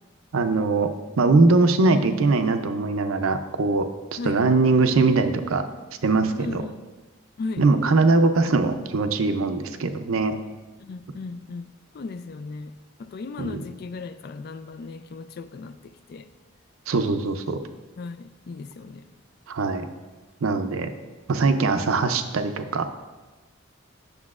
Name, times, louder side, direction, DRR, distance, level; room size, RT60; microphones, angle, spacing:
voice 1, 0.3-0.9 1.2-3.8 4.1-5.6 6.0-6.6 7.6-10.3 13.4-13.6 16.9-17.6 19.5-19.8 20.4-20.9 21.3-22.9, right 3 dB, 80° right, 8 dB, 0.5 m, -21 dB
voice 2, 6.4-6.8 7.4-7.7 10.8-12.7 13.0-16.3 18.0-19.1, left 3 dB, 50° left, 12 dB, 0.3 m, -36 dB
9.5 x 6.9 x 2.4 m, 1.2 s
head